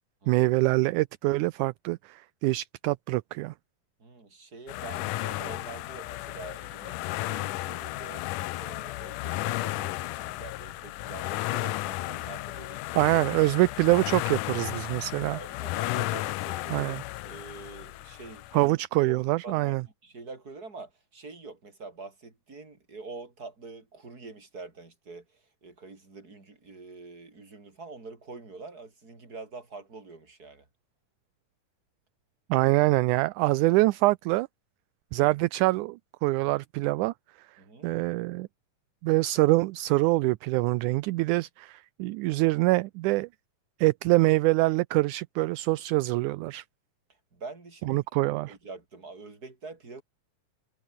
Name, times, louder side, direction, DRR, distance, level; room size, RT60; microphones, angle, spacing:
voice 1, 0.3-3.5 13.0-15.4 16.7-17.0 18.5-19.8 32.5-34.5 35.1-37.1 37.8-38.5 39.0-43.3 43.8-46.6 47.9-48.5, right 20 dB, 80° right, 2.0 m, -25 dB
voice 2, 4.0-8.3 8.6-13.1 15.3-17.0 17.2-18.7 19.1-19.2 19.4-30.7 37.6-37.9 47.3-50.0, right 3 dB, 30° right, 4.8 m, -45 dB
sound 1, 4.7-18.7, left 18 dB, 85° left, 2.3 m, -34 dB
omnidirectional pair, 3.7 m